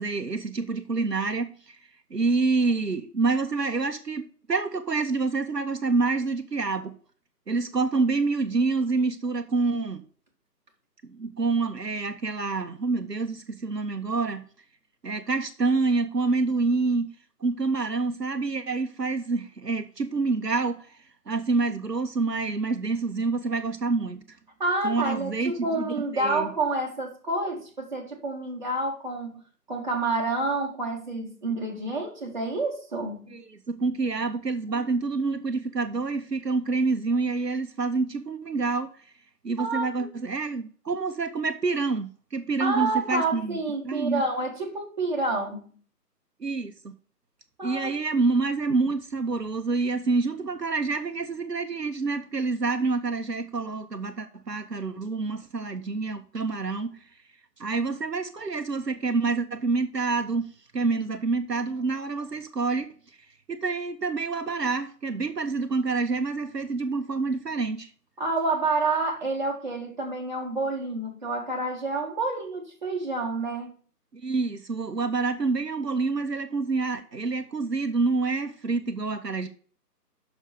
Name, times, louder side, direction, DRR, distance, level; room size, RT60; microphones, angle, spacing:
voice 1, 0.0-1.8 2.1-6.9 7.5-10.0 11.0-14.4 15.0-17.1 17.4-20.9 21.3-24.2 24.8-26.5 33.3-33.4 33.7-38.9 39.4-43.6 43.8-44.2 46.4-46.9 47.6-57.0 57.6-62.9 63.5-67.9 74.1-79.5, right 3 dB, 75° right, 1.0 m, -27 dB
voice 2, 24.6-29.4 29.7-33.3 39.6-39.9 42.6-45.7 47.6-48.0 68.2-73.7, right 2 dB, 30° right, 1.5 m, -28 dB
6.3 x 4.9 x 6.7 m
figure-of-eight pair, 155°, 49 cm